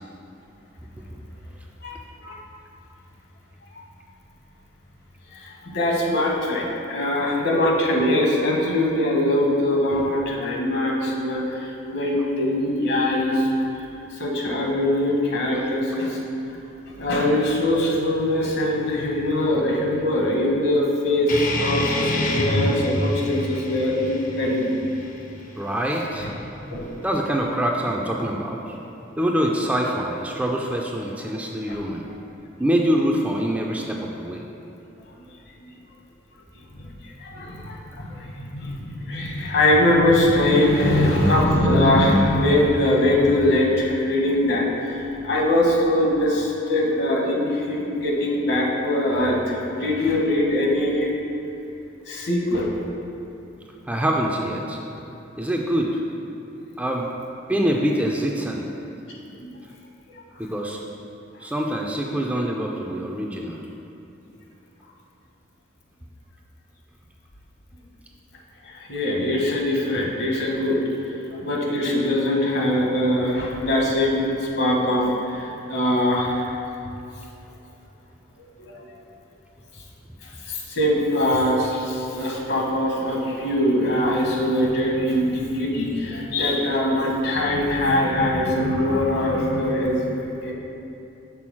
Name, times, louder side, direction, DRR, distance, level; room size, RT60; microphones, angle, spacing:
voice 1, 5.3-13.5 14.1-16.2 17.0-21.3 21.6-24.7 26.2-26.3 26.7-26.9 31.7-31.8 36.7-51.2 52.1-52.7 59.4-59.5 68.6-76.5 78.6-78.9 80.4-90.1 90.4-90.5, left 1 dB, 60° left, -2 dB, 1.1 m, -22 dB
sound 1, 21.3-26.3, left 1 dB, 45° left, 0.6 m, -27 dB
voice 2, 25.6-26.3 27.0-28.8 29.2-32.0 32.6-34.4 53.9-54.8 55.4-56.0 56.8-57.1 57.5-58.7 60.4-60.8 61.4-63.6, equal, 5° right, 0 dB, 0.4 m, -25 dB
6.0 x 3.9 x 6.1 m, 3.0 s
head